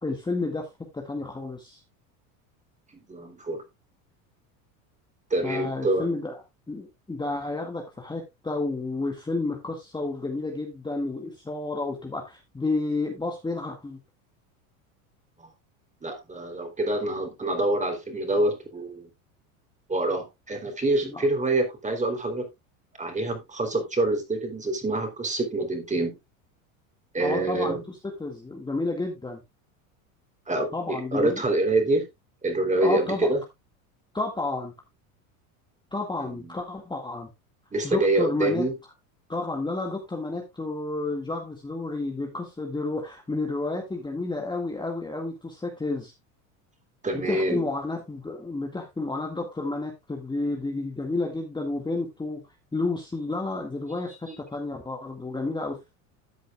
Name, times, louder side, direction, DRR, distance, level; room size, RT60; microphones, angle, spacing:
voice 1, 0.0-0.7 0.9-1.8 5.4-6.4 6.7-14.0 21.0-21.3 27.2-29.4 30.7-31.4 32.8-33.3 34.1-34.7 35.9-37.3 37.8-38.6 39.3-46.1 47.1-52.4 52.7-55.9, left 2 dB, 10° left, 1.9 m, -31 dB
voice 2, 3.1-3.6 5.3-6.1 15.4-15.5 16.0-19.1 19.9-22.5 23.0-26.2 27.1-27.8 30.5-32.1 32.4-33.4 36.2-36.6 37.7-38.7 47.0-47.7 54.2-54.4, right 2 dB, 15° right, 3.3 m, -26 dB
13.5 x 7.8 x 2.4 m
hypercardioid pair, 95°, 41 cm